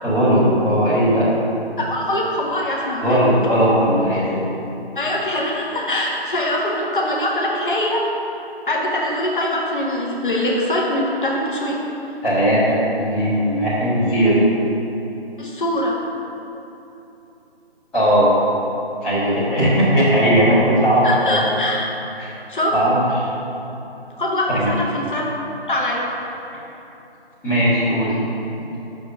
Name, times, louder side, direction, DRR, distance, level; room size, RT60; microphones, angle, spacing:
voice 1, 0.0-1.3 3.0-4.4 12.2-14.4 17.9-18.3 19.0-21.4 22.2-22.3 22.7-23.0 24.5-24.7 27.4-28.2, equal, 5° left, -18 dB, 1.4 m, -17 dB
voice 2, 1.8-3.3 4.9-8.1 8.7-11.8 15.4-16.0 21.0-21.9 22.5-22.8 24.2-25.3 25.7-26.0, left 1 dB, 50° left, -3 dB, 1.3 m, -23 dB
6.2 x 5.0 x 6.8 m, 3.0 s
figure-of-eight pair, 160°, 32 cm